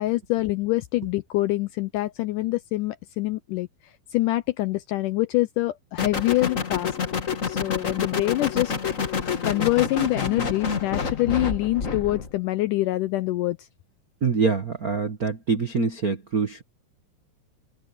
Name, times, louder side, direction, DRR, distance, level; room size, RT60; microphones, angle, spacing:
voice 1, 0.0-3.7 4.1-7.0 7.5-8.7 9.4-13.7, left 18 dB, 80° left, 1.9 m, -25 dB
sound 1, 6.0-12.3, left 5 dB, 50° left, 0.9 m, -28 dB
voice 2, 14.2-16.6, right 4 dB, 65° right, 0.8 m, -25 dB
omnidirectional pair, 4.3 m